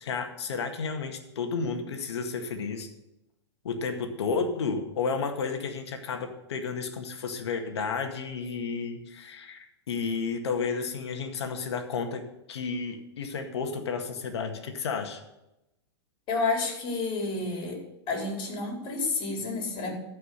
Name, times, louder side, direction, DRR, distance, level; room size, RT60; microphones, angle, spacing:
voice 1, 0.0-2.9 3.6-12.2 12.5-15.2, left 5 dB, 75° left, 5 dB, 1.9 m, -32 dB
voice 2, 16.3-17.8 18.1-19.9, left 3 dB, 35° left, 0 dB, 4.6 m, -30 dB
14.0 x 5.5 x 6.7 m, 0.91 s
hypercardioid pair, 120°, 14 cm